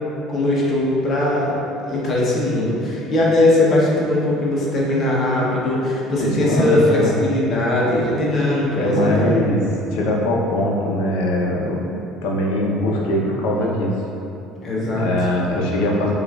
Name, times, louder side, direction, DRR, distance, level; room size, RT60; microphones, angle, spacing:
voice 1, 0.3-1.6 1.9-9.4 14.6-15.1, left 1 dB, 30° left, -5 dB, 0.7 m, -19 dB
voice 2, 6.2-7.1 8.8-9.6 9.9-11.9 12.2-14.0 14.9-16.1, left 1 dB, 80° left, -2 dB, 0.6 m, -21 dB
5.1 x 2.4 x 2.3 m, 2.8 s
cardioid pair, 160°, 0 cm